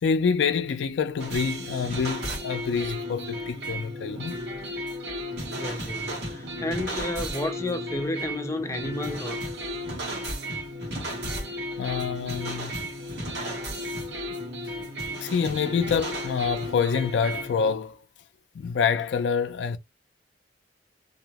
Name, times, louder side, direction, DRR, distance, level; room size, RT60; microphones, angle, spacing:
voice 1, 0.0-4.4 11.8-12.8 15.2-18.0 18.5-19.8, left 6 dB, 90° left, 0.4 m, -26 dB
sound 1, 1.2-17.7, equal, 75° right, 1.2 m, -34 dB
voice 2, 5.5-9.5, left 2 dB, 15° left, 0.5 m, -31 dB
2.6 x 2.0 x 2.8 m
head